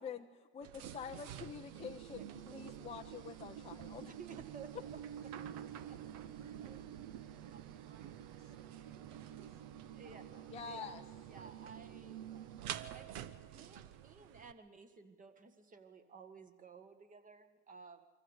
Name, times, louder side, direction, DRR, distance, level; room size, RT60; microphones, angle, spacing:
voice 1, 0.0-0.7 0.9-4.1 10.5-11.0, left 7 dB, 20° left, 4 dB, 0.7 m, -47 dB
sound 1, 0.6-14.5, right 10 dB, 50° right, 1.1 m, -48 dB
voice 2, 0.6-1.4 2.5-3.0 5.2-6.0 6.3-11.3, right 3 dB, 85° right, 3 dB, 4.0 m, -67 dB
voice 3, 2.2-2.6 4.1-5.0 5.5-5.6 7.4-7.6 9.9-10.2 10.7-11.0 11.3-18.1, right 5 dB, 25° right, 9 dB, 1.9 m, -55 dB
24.0 x 14.5 x 8.2 m, 1.4 s
hypercardioid pair, 105°, 34 cm